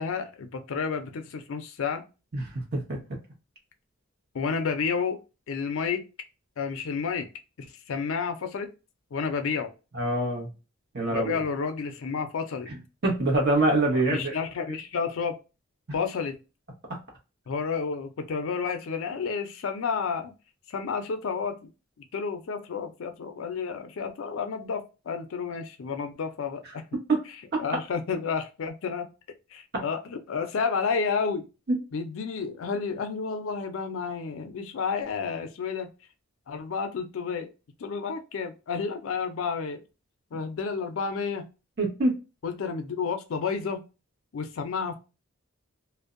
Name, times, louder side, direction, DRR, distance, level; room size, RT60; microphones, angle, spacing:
voice 1, 0.0-2.0 4.3-5.2 5.5-6.0 6.6-7.3 7.6-8.7 9.1-9.7 11.0-12.7 13.9-15.3 15.9-16.4 17.5-20.3 20.7-21.6 22.1-26.8 27.6-29.1 29.5-31.5 31.9-35.9 36.5-37.5 37.8-39.8 40.3-41.5 42.4-43.8 44.3-45.0, left 5 dB, 70° left, 7 dB, 0.4 m, -31 dB
voice 2, 9.9-10.5 10.9-11.4 13.0-14.4 27.1-27.2 27.5-27.6 29.7-29.8 31.7-31.8 41.8-42.2, right 2 dB, 50° right, -1 dB, 1.0 m, -24 dB
2.5 x 2.1 x 2.4 m, 0.29 s
head